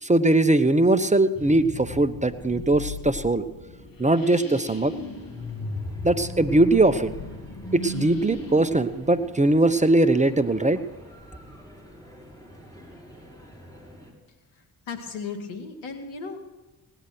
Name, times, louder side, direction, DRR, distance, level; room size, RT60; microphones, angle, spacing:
voice 1, 0.0-3.4 4.0-4.9 6.0-7.1 7.7-10.8, right 2 dB, 15° right, 11 dB, 0.9 m, -20 dB
sound 1, 1.3-10.0, left 3 dB, 45° left, 2.2 m, -37 dB
sound 2, 4.6-14.1, equal, 5° left, 5.9 m, -47 dB
voice 2, 14.9-16.5, left 5 dB, 75° left, 7 dB, 2.1 m, -35 dB
18.5 x 10.0 x 6.1 m, 1.1 s
hypercardioid pair, 40°, 47 cm